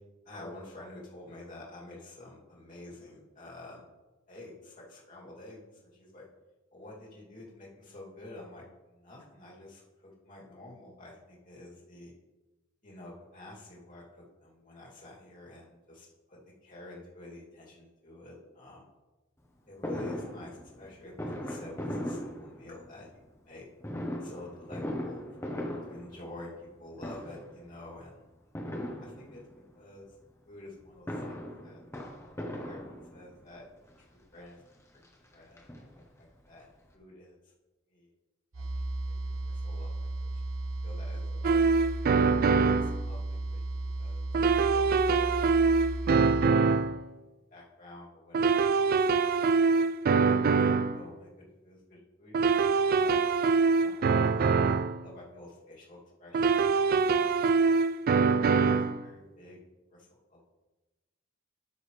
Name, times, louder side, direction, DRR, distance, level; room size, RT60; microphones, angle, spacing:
voice 1, 0.2-3.8 4.3-6.3 6.7-12.1 12.8-18.8 19.7-23.7 24.2-25.2 25.8-28.2 29.0-29.4 29.7-30.0 30.5-31.8 32.5-33.6 34.3-34.6 35.3-35.6 36.0-37.4 37.9-38.1 38.5-39.9 40.8-41.7 42.5-43.6 44.0-44.2 44.7-45.5 46.2-46.9 47.5-49.1 49.4-50.2 50.5-53.2 53.8-54.6 55.0-57.3 57.6-57.7 58.5-59.6 59.9-60.4, left 2 dB, 45° left, -5 dB, 2.7 m, -49 dB
Fireworks, 19.8-23.0 23.8-26.7 27.0-27.6 28.5-29.6 30.8-33.4 34.2-34.3 34.6-34.7 35.0-36.3 36.6-36.7 36.9-37.0, left 1 dB, 15° left, 1.0 m, -38 dB
sound 1, 38.5-46.5, right 2 dB, 85° right, 0.9 m, -35 dB
sound 2, 41.4-43.0 44.3-47.0 48.3-51.0 52.3-55.0 56.3-59.0, right 4 dB, 45° right, 0.3 m, -24 dB
12.5 x 6.3 x 3.3 m, 1.1 s
head